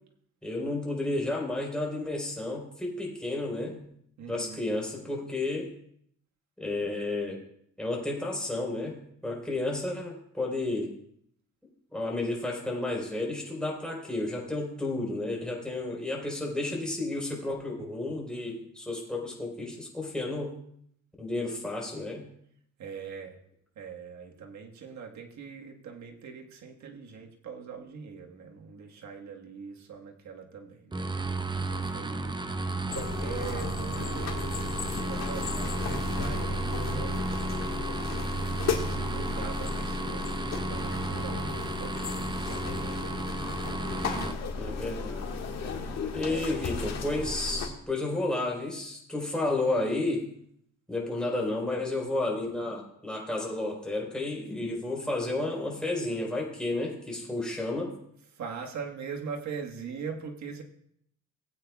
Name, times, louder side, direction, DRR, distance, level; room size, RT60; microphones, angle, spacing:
voice 1, 0.4-3.8 4.3-5.7 6.6-7.4 7.8-10.9 11.9-20.5 21.2-22.3 44.6-45.3 46.1-50.2 50.9-57.9, left 2 dB, 5° left, -2 dB, 4.2 m, -32 dB
voice 2, 4.2-4.7 22.8-23.4 23.8-31.0 31.7-32.4 32.9-37.8 38.5-42.6 46.2-46.5 58.3-60.6, right 6 dB, 65° right, 2 dB, 1.6 m, -42 dB
sound 1, 30.9-44.3, right 3 dB, 15° right, 0.7 m, -34 dB
sound 2, 32.9-47.7, left 4 dB, 60° left, 1.7 m, -34 dB
18.0 x 8.6 x 2.3 m, 0.69 s
cardioid pair, 90°, 30 cm